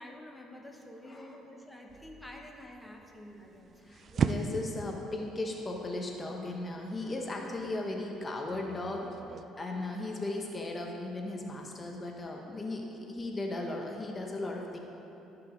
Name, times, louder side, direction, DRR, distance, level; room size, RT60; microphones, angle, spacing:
voice 1, 0.0-3.7 4.1-4.3, left 1 dB, 5° left, 1 dB, 1.1 m, -48 dB
voice 2, 1.0-1.4 3.8-9.2 9.6-14.8, left 2 dB, 25° left, 1 dB, 0.8 m, -37 dB
sound 1, 1.9-9.4, right 5 dB, 45° right, 0.4 m, -38 dB
13.0 x 5.8 x 3.8 m, 3.0 s
cardioid pair, 105°, 0 cm